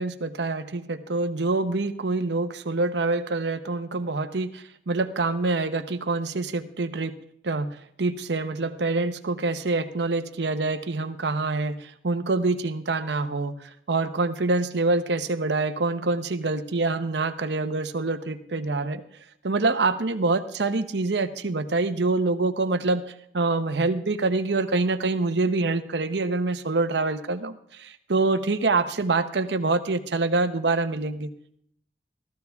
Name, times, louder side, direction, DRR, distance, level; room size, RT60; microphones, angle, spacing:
voice 1, 0.0-7.1 7.4-19.0 19.4-23.0 23.3-31.3, right 3 dB, 80° right, 10 dB, 0.8 m, -26 dB
14.5 x 14.5 x 3.5 m, 0.69 s
head